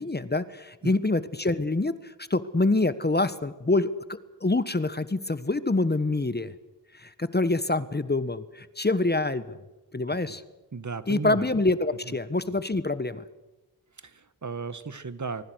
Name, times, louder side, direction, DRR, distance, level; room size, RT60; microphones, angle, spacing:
voice 1, 0.0-6.5 6.9-9.6 9.9-10.4 11.1-13.2, left 2 dB, 25° left, 14 dB, 1.4 m, -26 dB
voice 2, 10.7-11.5 14.0-15.4, right 5 dB, 45° right, 13 dB, 1.7 m, -35 dB
24.5 x 23.5 x 6.4 m, 1.1 s
cardioid pair, 55°, 41 cm